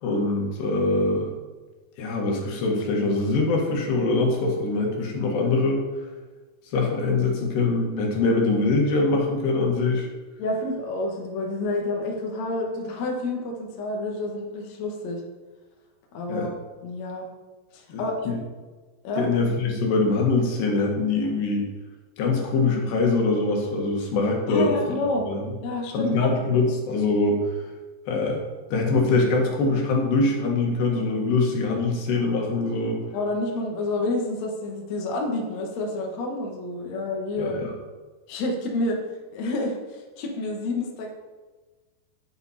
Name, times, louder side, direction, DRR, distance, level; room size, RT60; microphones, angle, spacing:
voice 1, 0.0-1.3 2.0-5.8 6.7-10.1 16.3-16.5 17.9-18.4 19.2-21.7 22.2-24.8 25.3-25.4 25.9-27.5 28.1-28.4 28.7-33.0 37.4-37.7, left 3 dB, 75° left, 0 dB, 3.8 m, -23 dB
voice 2, 10.4-15.2 16.1-16.5 16.8-17.3 17.7-18.3 19.0-19.3 24.5-25.3 25.6-26.2 33.1-37.6 38.3-39.0 39.3-41.1, left 2 dB, 55° left, 0 dB, 2.3 m, -29 dB
13.0 x 8.8 x 4.3 m, 1.3 s
omnidirectional pair, 4.9 m